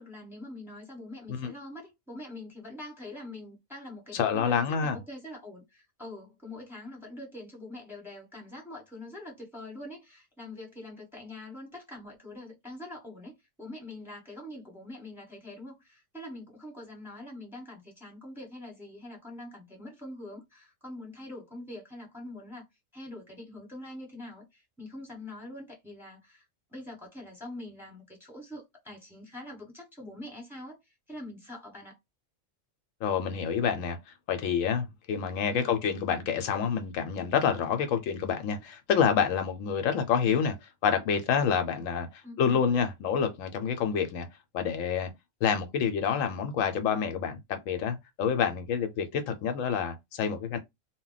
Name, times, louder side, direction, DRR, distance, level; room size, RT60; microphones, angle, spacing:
voice 1, 0.0-22.7 22.9-26.4 26.7-30.8 31.1-32.0 35.5-35.8 42.2-42.7, left 1 dB, ahead, 1.0 m, -44 dB
voice 2, 4.1-5.0 33.0-34.0 34.3-44.3 44.5-45.1 45.4-50.6, left 7 dB, 85° left, 1.0 m, -28 dB
2.2 x 2.1 x 3.8 m
omnidirectional pair, 1.4 m